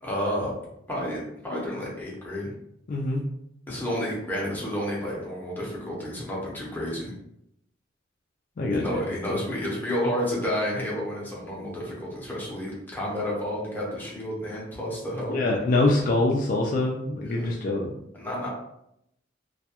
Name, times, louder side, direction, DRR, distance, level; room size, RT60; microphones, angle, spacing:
voice 1, 0.0-0.6 0.9-2.5 3.7-7.1 8.7-15.4 17.2-17.5 18.1-18.5, equal, 10° left, -5 dB, 0.7 m, -30 dB
voice 2, 2.9-3.2 8.6-9.4 15.3-17.9, left 2 dB, 50° left, -1 dB, 0.3 m, -25 dB
2.3 x 2.2 x 2.8 m, 0.78 s
head